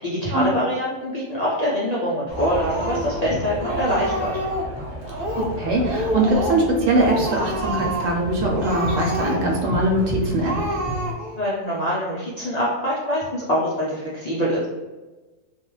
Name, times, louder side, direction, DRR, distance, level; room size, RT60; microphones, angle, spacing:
voice 1, 0.0-4.3 11.4-14.7, equal, 65° left, -8 dB, 0.4 m, -24 dB
sound 1, 2.3-11.1, equal, 10° right, 0.9 m, -32 dB
Speech, 2.3-3.3 3.6-4.7 5.1-5.6 5.8-6.7 7.0-8.2 8.5-9.6 10.0-10.1 10.4-11.4, right 1 dB, 55° right, 0.7 m, -28 dB
voice 2, 5.6-10.6, right 1 dB, 75° right, -1 dB, 1.1 m, -21 dB
2.3 x 2.2 x 3.0 m, 1.2 s
omnidirectional pair, 1.4 m